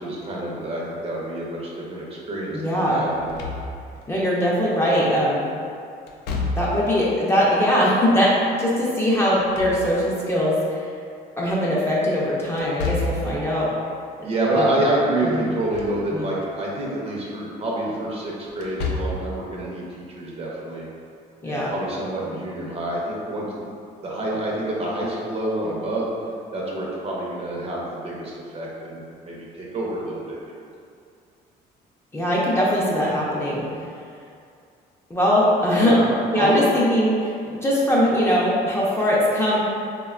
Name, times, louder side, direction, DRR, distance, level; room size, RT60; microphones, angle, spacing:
voice 1, 0.0-3.4 14.2-20.9 21.5-23.7 24.0-26.1 26.5-30.6 35.7-36.6, right 1 dB, 35° right, -4 dB, 0.6 m, -27 dB
voice 2, 2.5-3.1 4.1-5.5 6.5-10.9 11.4-13.7 14.6-14.7 15.2-15.4 16.1-16.3 21.4-21.7 32.1-33.6 35.1-36.0 36.3-39.6, equal, 15° left, -7 dB, 0.5 m, -21 dB
Slam / Thump thud, 3.1-4.1 6.1-7.0 9.2-10.3 12.6-13.4 15.4-16.0 16.4-16.5 18.5-19.3, left 3 dB, 80° left, 0.4 m, -29 dB
3.3 x 2.2 x 2.3 m, 2.3 s
cardioid pair, 110°, 17 cm